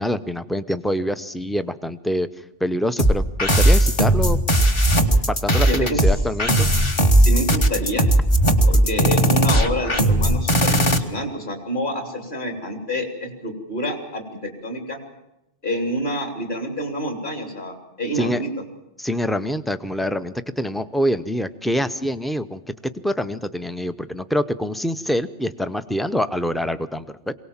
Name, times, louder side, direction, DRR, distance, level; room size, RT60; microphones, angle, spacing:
voice 1, 0.0-2.3 2.6-4.4 5.3-6.7 18.1-18.4 19.0-22.6 23.0-27.3, equal, ahead, 11 dB, 0.4 m, -25 dB
sound 1, 3.0-11.0, right 1 dB, 25° left, 1.2 m, -17 dB
voice 2, 5.7-6.0 7.2-8.1 8.7-15.0 15.6-18.5, equal, 40° left, 3 dB, 3.7 m, -28 dB
23.0 x 18.0 x 7.3 m, 0.87 s
omnidirectional pair, 1.3 m